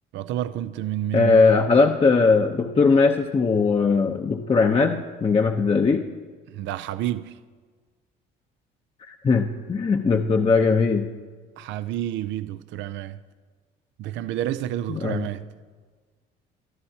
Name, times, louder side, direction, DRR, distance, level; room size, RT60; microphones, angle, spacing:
voice 1, 0.1-1.4 6.5-7.3 11.6-13.2 14.0-15.4, right 12 dB, 70° right, 0.5 m, -29 dB
voice 2, 1.1-6.1 9.1-11.1 14.9-15.3, left 4 dB, 30° left, 0.8 m, -20 dB
22.0 x 13.0 x 2.8 m
supercardioid pair, 80°, 20 cm